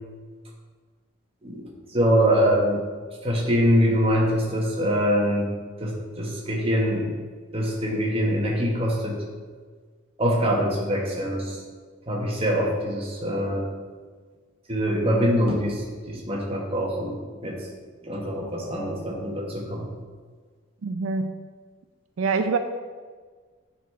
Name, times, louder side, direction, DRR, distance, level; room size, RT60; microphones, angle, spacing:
voice 1, 1.4-2.8 3.2-5.5 5.8-7.2 7.5-9.2 10.2-11.6 12.1-13.6 14.7-17.7 18.0-19.9, equal, 30° right, -1 dB, 1.3 m, -24 dB
voice 2, 20.8-21.4 22.2-22.6, right 4 dB, 85° right, 8 dB, 0.4 m, -25 dB
9.3 x 4.1 x 4.6 m, 1.5 s
head